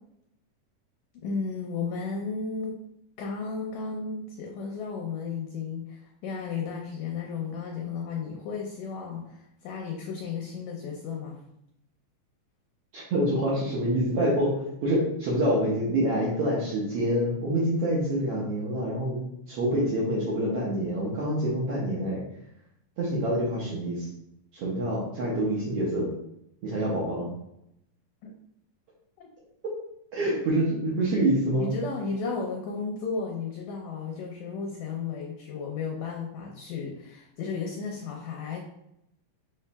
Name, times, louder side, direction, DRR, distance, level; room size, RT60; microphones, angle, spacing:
voice 1, 1.2-2.7 3.2-11.4 28.2-28.3 29.2-29.3 31.6-38.6, left 5 dB, 80° left, 0 dB, 1.7 m, -34 dB
voice 2, 12.9-14.5 14.8-22.2 23.0-24.0 24.5-26.1 26.6-27.3 30.1-31.7, right 1 dB, 75° right, -6 dB, 1.4 m, -26 dB
6.7 x 3.1 x 2.3 m, 0.80 s
omnidirectional pair, 3.8 m